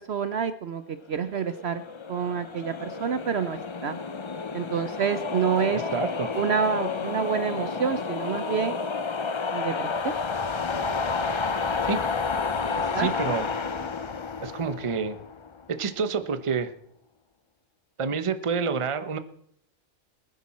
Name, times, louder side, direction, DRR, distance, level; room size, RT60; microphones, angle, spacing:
voice 1, 0.0-1.8 2.1-4.0 4.5-5.8 6.3-8.8 9.5-10.1 12.7-13.1, right 7 dB, 60° right, 11 dB, 0.9 m, -28 dB
sound 1, 1.3-15.6, left 5 dB, 40° left, 0.4 m, -30 dB
voice 2, 5.9-6.3 11.9-12.1 12.9-13.5 14.4-15.2 15.8-16.7 18.0-19.2, right 5 dB, 30° right, 10 dB, 0.8 m, -28 dB
20.5 x 10.0 x 4.3 m, 0.68 s
omnidirectional pair, 1.4 m